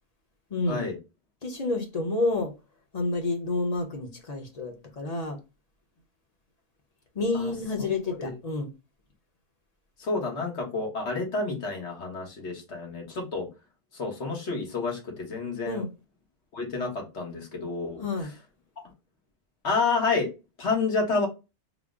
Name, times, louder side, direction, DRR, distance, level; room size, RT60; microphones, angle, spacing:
voice 1, 0.5-0.9 1.4-2.5 2.9-5.4 7.1-8.7 15.6-15.9 18.0-18.3, left 3 dB, 40° left, 0.8 m, -29 dB
voice 2, 7.8-8.3 10.0-13.5 13.9-15.8 16.5-18.0 19.6-20.3 20.6-21.3, left 4 dB, 80° left, 1.5 m, -29 dB
3.6 x 2.0 x 3.6 m
omnidirectional pair, 1.1 m